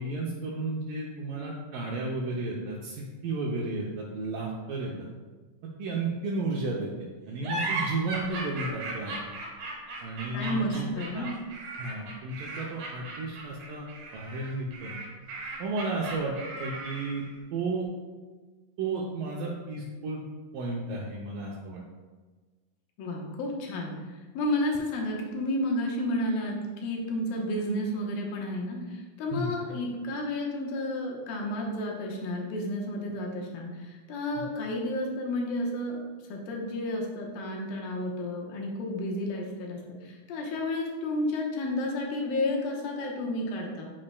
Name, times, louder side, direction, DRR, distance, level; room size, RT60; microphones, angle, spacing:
voice 1, 0.0-5.1 5.6-6.9 7.3-9.1 10.0-10.9 11.1-11.3 11.8-13.9 14.1-15.0 15.6-16.3 16.6-17.2 17.5-17.9 18.8-20.2 20.5-21.8 29.3-29.6 34.4-34.5, right 3 dB, 80° right, -3 dB, 2.3 m, -33 dB
sound 1, 7.4-17.3, right 2 dB, 65° right, 2.7 m, -36 dB
voice 2, 10.3-11.3 23.0-23.9 24.3-26.6 26.8-36.0 36.3-43.9, left 1 dB, 85° left, -1 dB, 2.9 m, -31 dB
7.6 x 7.4 x 2.2 m, 1.3 s
omnidirectional pair, 4.0 m